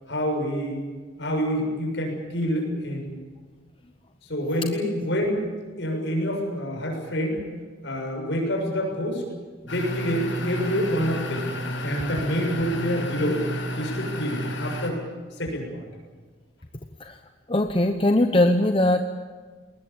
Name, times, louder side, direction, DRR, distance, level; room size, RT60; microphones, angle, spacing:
voice 1, 0.1-0.8 1.2-3.1 4.3-5.5 5.8-7.4 7.8-9.2 9.6-11.5 11.8-13.4 13.8-15.0 15.4-15.8, equal, 65° left, 2 dB, 7.0 m, -27 dB
sound 1, 9.7-14.9, equal, 80° left, 5.7 m, -31 dB
voice 2, 17.5-19.1, left 1 dB, 25° left, 6 dB, 0.9 m, -20 dB
21.5 x 19.5 x 8.8 m, 1.4 s
head